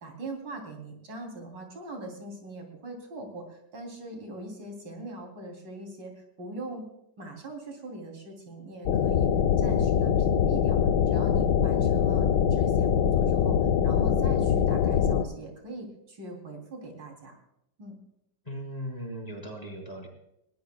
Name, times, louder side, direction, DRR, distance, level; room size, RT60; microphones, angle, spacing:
voice 1, 0.0-6.8 7.2-9.3 9.6-17.4 17.8-18.0, right 2 dB, 85° right, 2 dB, 4.0 m, -41 dB
sound 1, 8.9-15.2, left 8 dB, 75° left, 1.4 m, -23 dB
voice 2, 18.4-20.1, equal, 20° left, 0 dB, 4.3 m, -38 dB
21.0 x 19.0 x 2.3 m, 0.80 s
omnidirectional pair, 2.0 m